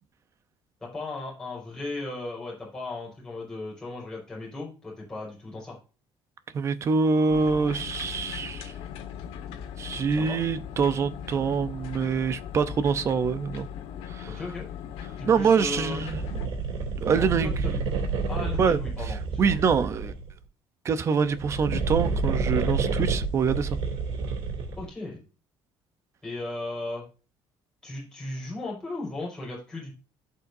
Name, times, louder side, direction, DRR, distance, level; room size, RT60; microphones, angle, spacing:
voice 1, 0.8-5.8 10.2-10.4 14.3-14.6 15.2-16.0 17.1-17.8 18.3-19.6 24.8-25.2 26.2-27.0 27.8-29.9, left 2 dB, 5° left, 5.0 m, -36 dB
voice 2, 6.5-8.7 9.8-13.7 14.1-14.4 15.3-16.4 17.0-17.5 18.6-18.8 19.4-20.1 20.8-23.8, right 5 dB, 30° right, 0.6 m, -25 dB
sound 1, 7.3-16.5, left 9 dB, 85° left, 1.5 m, -39 dB
sound 2, 15.8-20.3 21.2-24.9, right 4 dB, 65° right, 2.8 m, -29 dB
16.0 x 5.6 x 2.6 m
cardioid pair, 180°, 10 cm